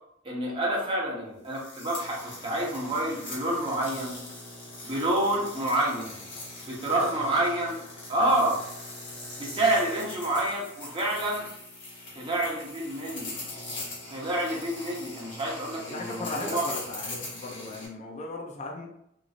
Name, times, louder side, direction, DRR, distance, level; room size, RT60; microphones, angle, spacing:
voice 1, 0.2-2.2 2.4-4.2 4.8-6.2 6.6-7.8 8.1-8.6 9.4-11.4 12.1-13.4 14.1-16.6, right 1 dB, 25° right, -4 dB, 0.9 m, -28 dB
sound 1, 1.4-17.9, left 2 dB, 65° left, 1.1 m, -41 dB
voice 2, 6.8-7.2 15.7-18.9, left 2 dB, 35° left, 0 dB, 0.4 m, -37 dB
3.1 x 2.5 x 2.4 m, 0.75 s
head